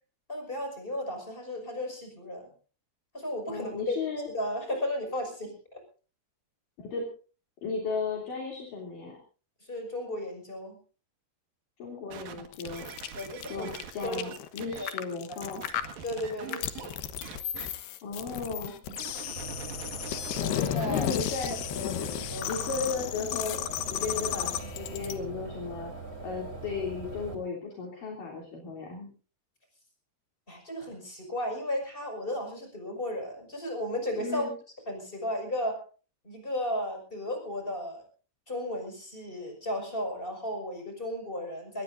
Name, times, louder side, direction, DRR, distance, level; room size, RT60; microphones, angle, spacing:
voice 1, 0.3-2.5 3.1-4.0 4.3-5.8 9.6-10.8 13.1-13.8 14.0-14.2 14.8-14.9 15.3-15.6 16.0-17.0 20.3-21.1 21.8-22.5 22.8-22.9 30.5-34.5 34.9-35.8 36.2-38.0 38.5-41.8, left 1 dB, 10° left, 4 dB, 5.8 m, -34 dB
voice 2, 3.5-4.3 6.8-7.1 7.6-9.2 11.8-12.9 13.5-15.6 18.0-18.7 20.8-21.5 22.5-25.9 26.2-29.1 34.2-34.5, left 4 dB, 55° left, -1 dB, 4.5 m, -35 dB
sound 1, 12.1-14.8 15.4-16.9 17.2-17.7 18.9-21.2 21.8-21.9, right 8 dB, 65° right, 3.3 m, -44 dB
sound 2, 12.5-25.1, left 11 dB, 80° left, 3.2 m, -34 dB
sound 3, 19.4-27.4, right 3 dB, 15° right, 3.3 m, -41 dB
23.0 x 20.0 x 2.6 m, 0.38 s
omnidirectional pair, 4.6 m